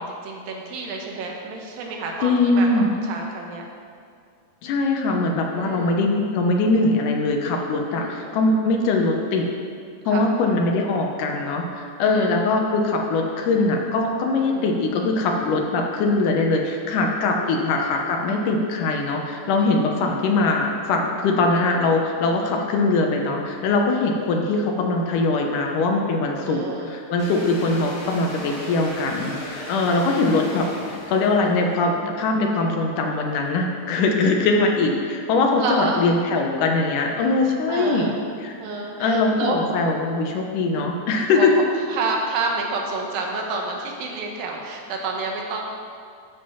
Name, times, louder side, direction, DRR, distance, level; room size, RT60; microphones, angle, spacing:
voice 1, 0.0-3.6 5.5-5.9 7.9-8.2 10.0-10.3 12.0-12.4 14.4-14.7 17.2-17.7 26.3-26.9 29.9-30.0 35.6-36.1 37.7-38.2 38.6-39.6 40.7-41.0 41.4-41.5 41.9-45.6, right 3 dB, 75° right, 0 dB, 2.7 m, -29 dB
voice 2, 2.2-2.9 4.6-9.4 10.1-38.2 38.4-38.6 39.0-41.5, left 3 dB, 70° left, 1 dB, 2.1 m, -22 dB
sound 1, 27.2-31.7, left 1 dB, 40° left, 3.0 m, -36 dB
13.5 x 4.9 x 5.7 m, 2.2 s
omnidirectional pair, 4.4 m